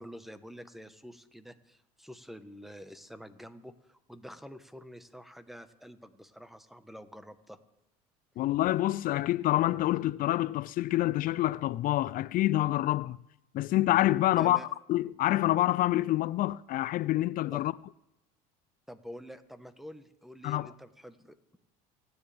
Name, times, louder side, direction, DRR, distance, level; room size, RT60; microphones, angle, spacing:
voice 1, 0.0-7.6 14.3-14.7 17.5-17.6 18.9-21.6, equal, ahead, 1.2 m, -47 dB
voice 2, 8.4-13.2 13.5-14.6 14.9-17.7 20.4-20.7, left 15 dB, 50° left, 0.4 m, -27 dB
29.0 x 10.0 x 3.4 m
supercardioid pair, 90°, 19 cm